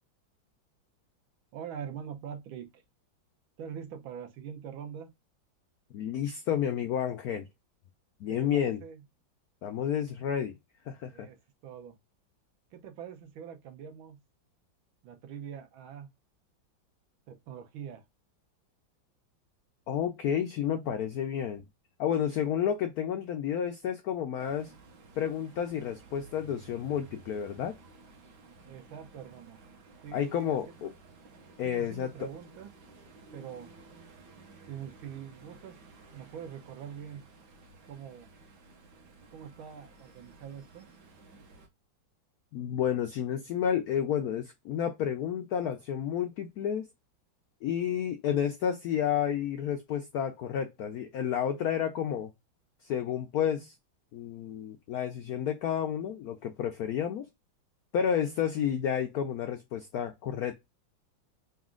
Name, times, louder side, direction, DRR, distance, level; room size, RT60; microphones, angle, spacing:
voice 1, 1.5-2.8 3.6-5.1 8.3-9.0 11.1-11.4 11.6-12.0 12.7-14.2 15.0-16.1 17.3-18.0 28.7-29.6 30.0-31.0 31.6-32.7 33.3-33.7 34.7-35.8 36.1-37.2 37.9-38.3 39.3-40.9, right 8 dB, 80° right, 1.6 m, -43 dB
voice 2, 5.9-7.5 8.2-8.8 9.6-10.6 10.9-11.3 19.9-21.6 22.0-24.7 25.2-27.8 30.1-30.9 31.6-32.3 42.5-46.9 47.6-52.3 52.8-53.7 54.1-57.3 57.9-60.5, left 9 dB, 80° left, 0.8 m, -31 dB
sound 1, 24.4-41.7, right 3 dB, 60° right, 1.5 m, -54 dB
4.1 x 2.4 x 3.6 m
omnidirectional pair, 2.2 m